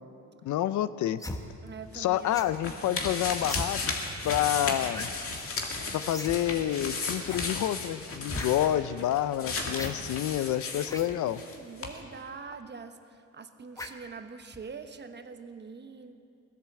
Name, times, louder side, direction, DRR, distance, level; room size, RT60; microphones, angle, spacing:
voice 1, 0.4-1.2 1.9-3.8 4.2-5.1 5.9-11.4, left 12 dB, 75° left, 15 dB, 0.6 m, -28 dB
sound 1, 1.2-1.4 2.3-2.6 3.4-3.7 4.9-5.1 5.4-5.5 6.1-6.3 6.6-6.7 7.3-7.5 8.2-8.5 9.7-9.9 10.8-11.1 11.9-12.0 13.7-14.0 14.5-14.7, left 1 dB, 10° left, 1.2 m, -38 dB
voice 2, 1.6-2.9 10.8-16.1, right 5 dB, 35° right, 8 dB, 1.1 m, -45 dB
sound 2, 1.9-11.6 11.8-11.9, left 3 dB, 45° left, 2.1 m, -35 dB
17.5 x 10.5 x 7.4 m, 2.4 s
cardioid pair, 90°, 30 cm